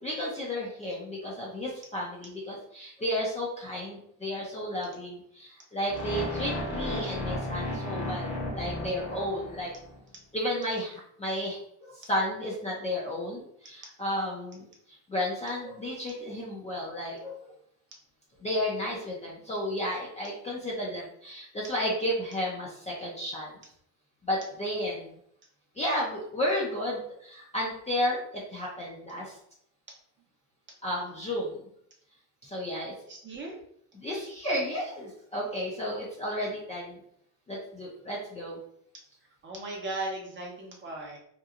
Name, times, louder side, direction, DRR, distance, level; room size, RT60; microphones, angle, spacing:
voice 1, 0.0-9.7 10.3-11.6 11.9-17.5 18.4-23.5 24.2-25.1 25.8-29.4 30.8-31.6 32.4-32.9 33.9-37.0 37.5-38.6, equal, 15° left, -5 dB, 0.5 m, -33 dB
sound 1, 5.9-10.0, left 1 dB, 40° left, 1.0 m, -34 dB
voice 2, 33.1-33.6 39.4-41.2, right 2 dB, 25° right, -1 dB, 0.7 m, -37 dB
2.9 x 2.3 x 2.4 m, 0.67 s
cardioid pair, 120°, 44 cm